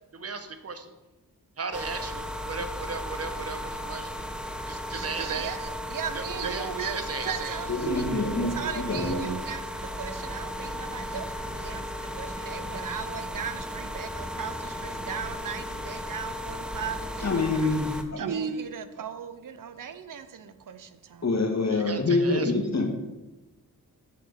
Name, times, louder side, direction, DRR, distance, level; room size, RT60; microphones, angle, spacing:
voice 1, 0.1-0.9 1.6-4.1 4.7-5.3 6.1-7.3 21.7-22.5, right 4 dB, 40° right, 8 dB, 0.9 m, -36 dB
sound 1, 1.7-18.0, equal, ahead, 0.7 m, -35 dB
voice 2, 4.9-11.8 12.1-17.8 18.1-21.3, right 7 dB, 60° right, 11 dB, 0.6 m, -36 dB
voice 3, 7.7-9.2 17.2-18.2 21.2-22.9, left 3 dB, 45° left, 2 dB, 1.6 m, -26 dB
6.9 x 4.0 x 6.5 m, 1.1 s
cardioid pair, 55°, 37 cm